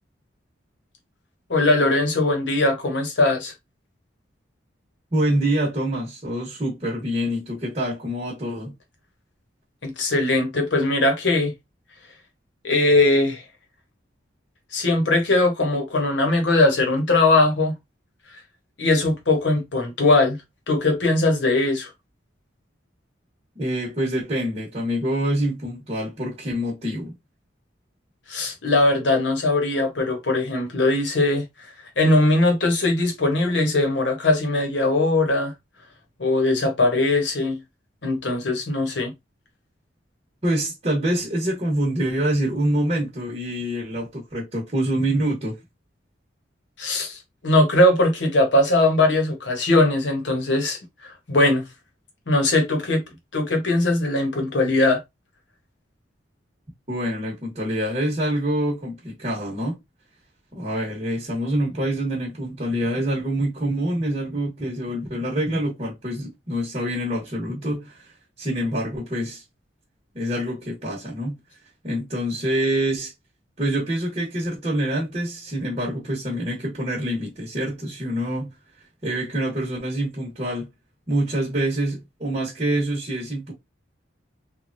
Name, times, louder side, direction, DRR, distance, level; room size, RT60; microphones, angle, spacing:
voice 1, 1.5-3.5 9.8-11.5 12.6-13.4 14.7-17.7 18.8-20.4 20.7-21.9 28.3-31.4 32.0-35.5 36.2-37.6 38.0-39.1 46.8-51.6 52.3-53.0 53.3-55.0, left 2 dB, 70° left, 1.0 m, -20 dB
voice 2, 5.1-8.7 23.6-27.1 40.4-45.6 56.9-59.8 60.5-68.0 68.4-69.4 70.1-71.4 71.8-73.1 73.6-78.5 79.0-80.7 81.1-83.5, right 1 dB, 35° right, 1.0 m, -26 dB
3.1 x 2.3 x 2.5 m
head